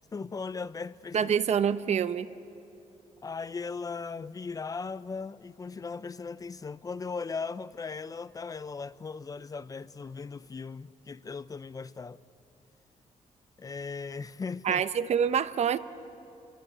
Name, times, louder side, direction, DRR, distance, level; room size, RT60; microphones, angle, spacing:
voice 1, 0.1-1.3 3.2-12.2 13.6-14.8, left 4 dB, 25° left, 0.5 m, -38 dB
voice 2, 1.1-2.3 14.6-15.8, right 7 dB, 55° right, 0.9 m, -26 dB
30.0 x 21.5 x 9.1 m
cardioid pair, 135°, 13 cm